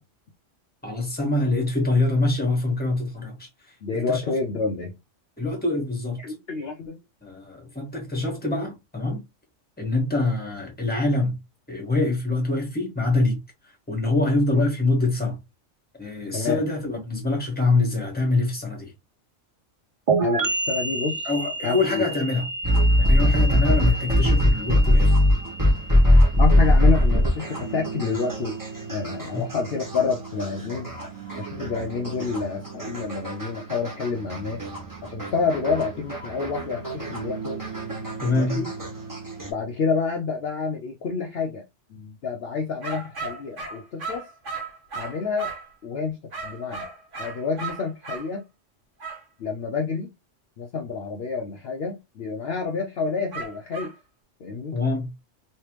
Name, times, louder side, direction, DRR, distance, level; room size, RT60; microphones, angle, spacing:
voice 1, 0.8-3.5 3.9-4.2 5.4-6.2 7.2-9.2 9.8-11.4 11.7-13.4 13.9-15.4 16.0-18.9 21.2-22.4 23.0-25.2 29.3-29.4 38.2-38.6 54.7-55.1, left 2 dB, 10° left, 1.4 m, -24 dB
voice 2, 3.8-4.9 6.2-7.0 16.3-16.6 20.2-21.3 21.6-22.0 26.4-28.6 28.9-30.9 31.4-34.6 35.0-37.6 38.3-38.7 39.5-41.6 41.9-44.3 44.9-45.5 45.8-46.8 47.2-48.4 49.4-50.1 50.6-53.9 54.4-54.8, left 5 dB, 60° left, 0.8 m, -28 dB
sound 1, 20.1-27.6, right 3 dB, 55° right, 0.4 m, -30 dB
sound 2, 22.6-39.5, left 1 dB, 15° right, 1.3 m, -23 dB
sound 3, 42.8-45.7 46.3-48.3 49.0-49.2 53.3-54.0, right 4 dB, 75° right, 1.7 m, -35 dB
3.2 x 3.2 x 3.1 m
omnidirectional pair, 1.3 m